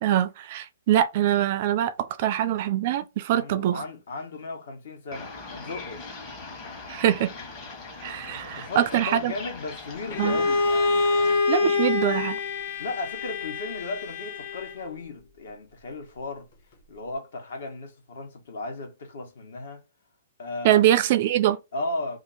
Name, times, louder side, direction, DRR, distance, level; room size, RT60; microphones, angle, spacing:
voice 1, 0.0-1.9 2.2-3.8 6.9-7.3 8.0-9.3 10.2-10.4 11.5-12.4 20.6-21.6, right 12 dB, 40° right, 0.3 m, -23 dB
voice 2, 3.3-6.2 8.6-11.4 12.8-16.5 16.9-19.8 20.4-20.8 21.7-22.2, left 2 dB, 65° left, 1.3 m, -35 dB
sound 1, 5.1-11.4, left 3 dB, 25° left, 1.1 m, -41 dB
Bowed string instrument, 10.1-14.9, left 4 dB, 45° left, 1.0 m, -26 dB
2.8 x 2.6 x 4.1 m
hypercardioid pair, 160°, 0 cm